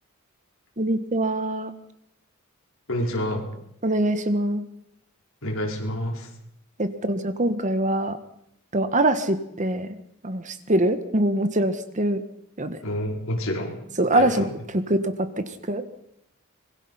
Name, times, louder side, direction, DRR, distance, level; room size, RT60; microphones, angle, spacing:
voice 1, 0.8-1.7 3.8-4.6 6.8-8.2 8.7-9.9 10.2-12.2 12.6-12.8 14.0-14.5 14.9-15.9, right 1 dB, 35° right, 10 dB, 1.4 m, -23 dB
voice 2, 2.9-3.4 5.4-6.3 12.8-13.8 14.1-14.5, left 1 dB, 60° left, 0 dB, 5.0 m, -28 dB
25.5 x 21.5 x 5.7 m, 0.78 s
head